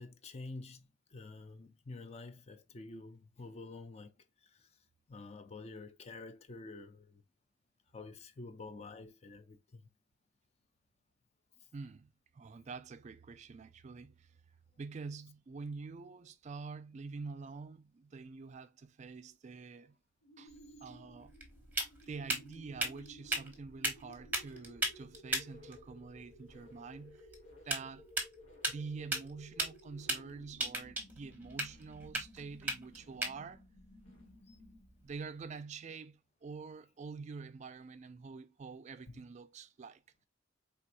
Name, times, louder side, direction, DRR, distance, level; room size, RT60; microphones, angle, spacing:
voice 1, 0.0-4.1 4.4-4.7 5.1-7.2 7.9-9.9 34.5-34.6, left 3 dB, 35° left, 0.5 m, -49 dB
voice 2, 11.7-14.3 14.8-20.0 20.4-20.5 20.8-21.3 22.1-27.3 27.6-28.1 28.7-33.6 35.0-40.2, right 4 dB, 35° right, 0.3 m, -47 dB
sound 1, 20.2-35.1, equal, 85° left, 1.6 m, -58 dB
sound 2, 20.5-35.2, right 2 dB, 10° right, 0.9 m, -40 dB
4.5 x 3.4 x 2.5 m
head